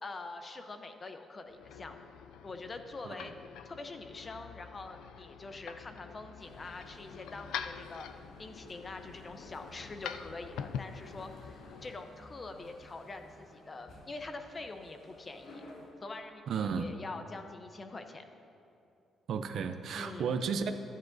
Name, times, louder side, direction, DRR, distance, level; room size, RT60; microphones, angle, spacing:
voice 1, 0.0-2.0 2.4-3.3 3.6-15.6 16.0-18.2 19.9-20.3, left 3 dB, 30° left, 7 dB, 0.7 m, -45 dB
sound 1, 1.5-12.0, left 8 dB, 85° left, 0.3 m, -45 dB
sound 2, 6.4-15.9, left 1 dB, 70° left, 1.6 m, -54 dB
voice 2, 16.5-16.9 19.3-20.7, right 6 dB, 65° right, 8 dB, 0.5 m, -33 dB
12.5 x 10.0 x 2.7 m, 2.8 s
cardioid pair, 90°, 0 cm